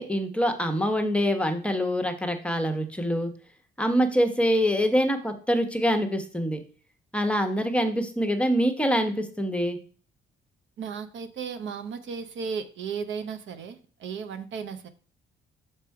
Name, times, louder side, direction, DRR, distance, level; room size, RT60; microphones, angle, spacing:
voice 1, 0.0-3.3 3.8-6.6 7.1-9.8, equal, 5° left, 6 dB, 1.0 m, -25 dB
voice 2, 10.8-14.9, right 6 dB, 70° right, 9 dB, 0.8 m, -35 dB
6.0 x 4.4 x 4.7 m, 0.42 s
cardioid pair, 90°, 20 cm